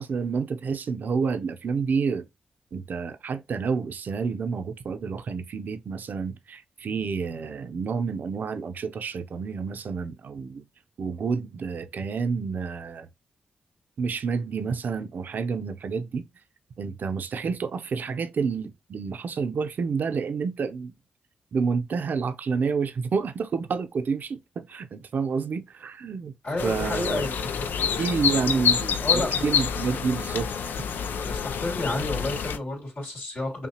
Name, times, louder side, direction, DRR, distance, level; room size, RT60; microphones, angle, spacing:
voice 1, 0.0-2.3 2.7-10.6 11.0-13.1 14.0-16.2 16.8-20.9 21.5-26.3 26.6-27.3 28.0-30.5, right 5 dB, 65° right, 0.6 m, -29 dB
voice 2, 26.4-28.0 28.3-28.7 29.0-29.5 31.2-33.7, left 2 dB, 65° left, 2.7 m, -31 dB
sound 1, 26.6-32.6, left 7 dB, 85° left, 0.4 m, -27 dB
5.7 x 2.3 x 2.9 m
cardioid pair, 60°, 3 cm